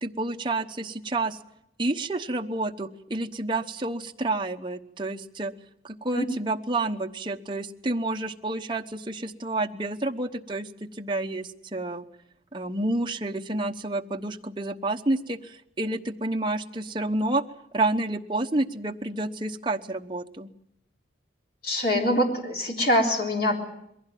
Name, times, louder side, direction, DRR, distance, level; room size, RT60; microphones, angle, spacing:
voice 1, 0.0-1.4 1.8-5.5 5.8-12.1 12.5-17.4 17.7-20.5, right 2 dB, 25° right, 4 dB, 1.0 m, -29 dB
voice 2, 21.6-23.6, equal, 55° left, 1 dB, 3.7 m, -24 dB
22.5 x 16.0 x 9.1 m, 0.79 s
head